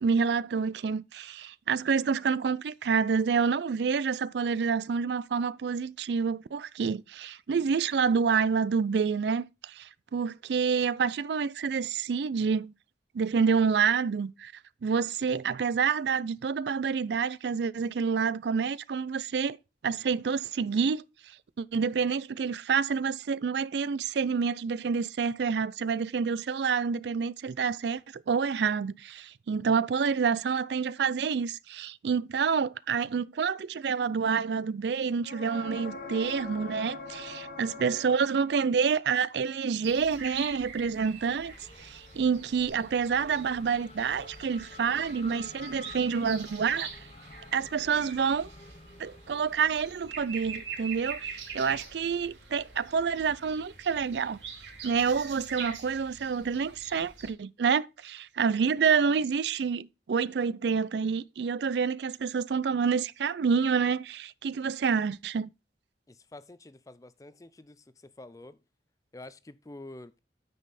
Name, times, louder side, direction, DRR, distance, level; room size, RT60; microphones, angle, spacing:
voice 1, 0.0-12.7 13.1-14.5 14.8-19.6 19.8-21.0 21.6-46.9 47.5-48.5 49.0-54.4 54.8-65.5, right 6 dB, 70° right, 0.4 m, -28 dB
sound 1, 35.2-39.0 42.7-42.8, left 3 dB, 50° left, 1.3 m, -42 dB
Race car auto racing / Accelerating revving vroom, 37.8-54.7, left 3 dB, 35° left, 0.9 m, -54 dB
sound 2, 39.8-57.3, right 6 dB, 90° right, 2.8 m, -44 dB
voice 2, 66.1-68.6 69.1-70.2, left 2 dB, 20° left, 0.4 m, -48 dB
9.4 x 5.4 x 4.1 m
head